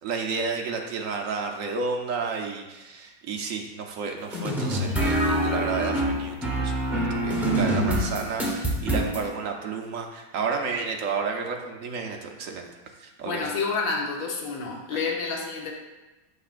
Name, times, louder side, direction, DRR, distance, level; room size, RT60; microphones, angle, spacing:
voice 1, 0.0-12.7 13.0-13.4, right 5 dB, 70° right, 2 dB, 0.7 m, -31 dB
sound 1, 4.3-9.2, right 1 dB, ahead, 0.5 m, -25 dB
voice 2, 13.2-15.7, left 4 dB, 70° left, -1 dB, 1.6 m, -29 dB
8.2 x 5.7 x 2.5 m, 1.1 s
omnidirectional pair, 2.2 m